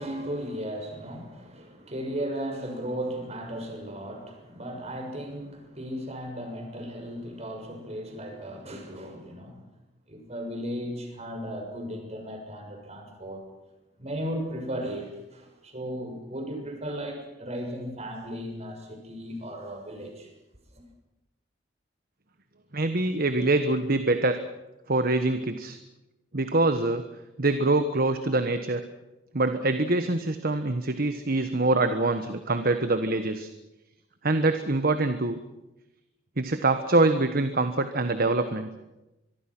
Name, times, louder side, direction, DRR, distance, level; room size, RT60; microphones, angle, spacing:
voice 1, 0.0-9.7 10.1-13.4 14.0-20.3, equal, 35° right, 3 dB, 6.6 m, -36 dB
voice 2, 22.7-24.4 24.9-25.8 26.3-27.0 27.4-28.8 29.3-33.5 34.2-35.4 36.4-38.7, right 2 dB, 55° right, 9 dB, 1.4 m, -24 dB
24.5 x 23.5 x 6.2 m, 0.97 s
head